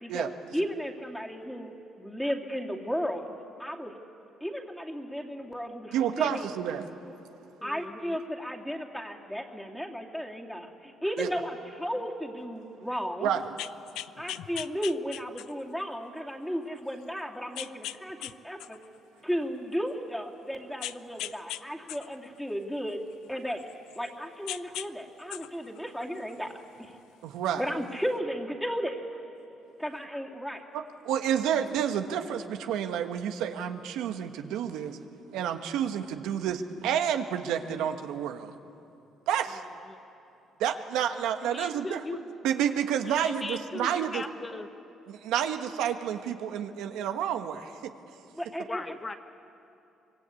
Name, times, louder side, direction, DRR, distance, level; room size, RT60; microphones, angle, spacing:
voice 1, 0.0-3.2 3.6-4.0 4.4-6.5 7.6-13.3 14.2-18.8 19.2-23.0 23.3-23.6 24.0-26.5 26.8-26.9 27.6-29.2 29.8-30.6 48.3-48.8, equal, ahead, 0 dB, 2.6 m, -34 dB
voice 2, 5.9-6.8 11.2-11.3 13.2-13.4 27.2-27.6 30.7-35.0 35.3-38.5 39.3-39.6 40.6-42.0 42.4-44.2 45.1-47.7, right 9 dB, 90° right, 6 dB, 1.4 m, -29 dB
voice 3, 7.6-8.2 39.9-40.0 41.4-42.2 43.0-44.7 48.7-49.1, left 3 dB, 20° left, 8 dB, 1.0 m, -38 dB
sound 1, 13.4-15.7 16.3-16.4 17.6-18.3 18.6-19.9 20.8-21.6 21.9-24.1 24.5-24.9 25.2-26.6 27.6-27.7, left 14 dB, 85° left, 0.5 m, -39 dB
25.0 x 22.0 x 8.5 m, 2.7 s
cardioid pair, 105°, 0 cm